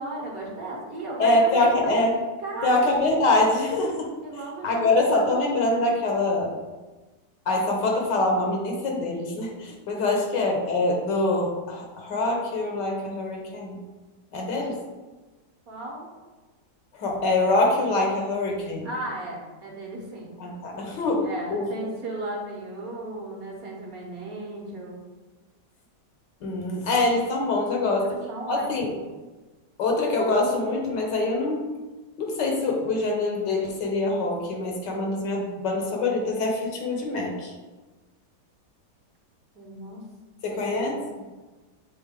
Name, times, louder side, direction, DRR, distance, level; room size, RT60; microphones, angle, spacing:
voice 1, 0.0-2.0 2.4-2.9 4.2-4.9 5.3-5.5 10.0-10.2 15.7-16.1 18.8-20.4 21.2-25.0 28.0-29.0 39.5-40.1 40.4-40.7, right 2 dB, 55° right, -4 dB, 1.5 m, -36 dB
voice 2, 1.2-2.2 2.6-4.1 4.6-6.5 7.5-13.8 14.3-14.8 16.9-18.9 20.4-21.7 26.4-28.1 28.5-28.9 29.8-31.7 32.2-37.5 40.4-41.0, left 2 dB, 75° left, 0 dB, 1.7 m, -24 dB
6.9 x 3.9 x 3.7 m, 1.2 s
omnidirectional pair, 1.9 m